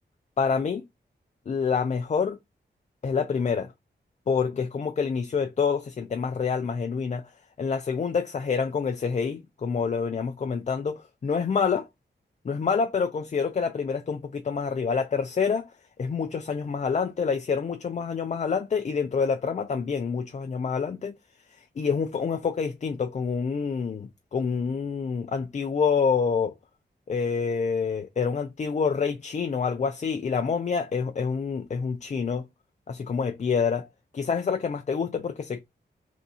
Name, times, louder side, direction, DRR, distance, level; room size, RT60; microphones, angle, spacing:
voice 1, 0.4-0.8 1.5-2.4 3.0-3.7 4.3-7.3 7.6-11.9 12.4-15.7 16.0-21.1 21.8-26.5 27.1-32.4 32.9-33.9 34.1-35.6, left 5 dB, 40° left, 0.4 m, -27 dB
3.4 x 2.7 x 4.0 m
wide cardioid pair, 120°, 18 cm